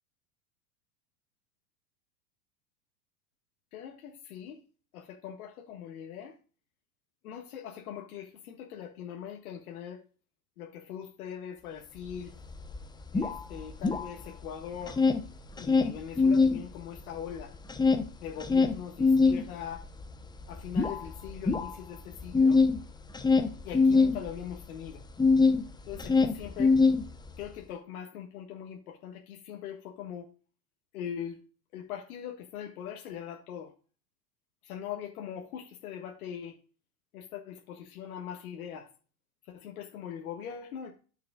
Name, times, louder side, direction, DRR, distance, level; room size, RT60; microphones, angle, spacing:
voice 1, 3.7-4.6 4.9-6.4 7.2-10.0 10.6-12.3 13.1-15.0 15.5-17.5 18.2-19.9 20.5-22.6 23.6-25.1 25.9-26.8 27.4-30.3 30.9-31.4 31.7-33.7 34.6-36.6 37.1-38.9 39.4-40.9, left 9 dB, 65° left, 1.6 m, -41 dB
sound 1, 12.1-12.2 12.5-14.5 14.7-16.6 17.0-25.6 25.9-27.4, left 4 dB, 10° left, 0.9 m, -24 dB
13.5 x 6.6 x 2.3 m
hypercardioid pair, 90°, 46 cm